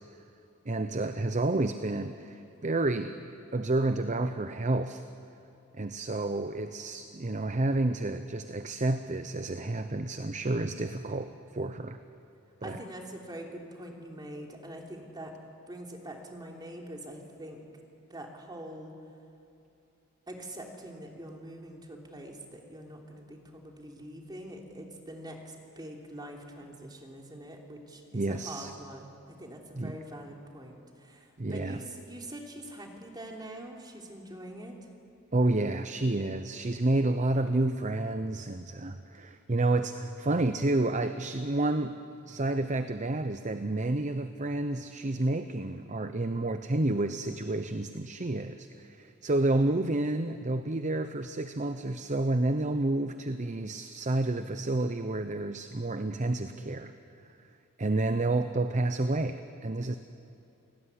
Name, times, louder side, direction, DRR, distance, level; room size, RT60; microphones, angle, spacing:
voice 1, 0.7-3.1 3.5-5.0 5.7-12.0 12.6-12.8 28.1-28.7 29.7-30.0 31.4-31.8 35.3-41.9 42.3-56.9 57.8-60.0, right 2 dB, 35° right, 9 dB, 0.8 m, -30 dB
voice 2, 12.6-15.4 15.7-17.6 18.1-18.9 20.3-34.7, right 1 dB, 20° right, 1 dB, 3.3 m, -44 dB
29.5 x 18.5 x 9.8 m, 2.7 s
head